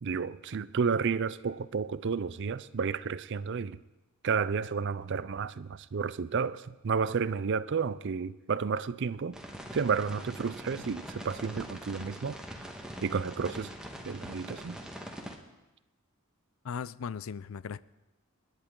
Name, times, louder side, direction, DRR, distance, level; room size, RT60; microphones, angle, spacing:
voice 1, 0.0-3.8 4.2-9.4 9.7-12.4 13.0-13.7 14.0-14.8, right 5 dB, 55° right, 0.5 m, -31 dB
sound 1, 9.3-15.4, equal, 5° right, 1.4 m, -43 dB
voice 2, 16.6-17.8, left 6 dB, 70° left, 0.4 m, -37 dB
29.0 x 10.5 x 3.8 m
head